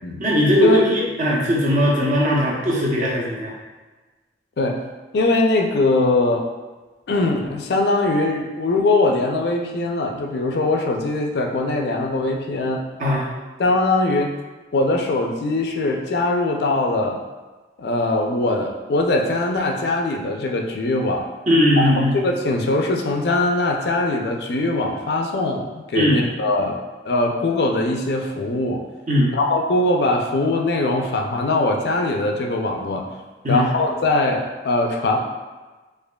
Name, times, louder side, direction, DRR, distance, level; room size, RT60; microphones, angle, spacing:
voice 1, 0.2-3.5 13.0-13.3 21.5-22.2 25.9-26.2 29.1-29.3 33.4-33.7, equal, 45° right, -4 dB, 0.7 m, -19 dB
voice 2, 5.1-6.5 7.1-12.8 13.6-14.4 14.7-17.2 17.8-21.3 22.1-26.8 27.0-28.8 29.3-33.1 33.5-35.2, left 2 dB, 65° left, 2 dB, 0.4 m, -21 dB
4.9 x 2.4 x 2.2 m, 1.3 s
head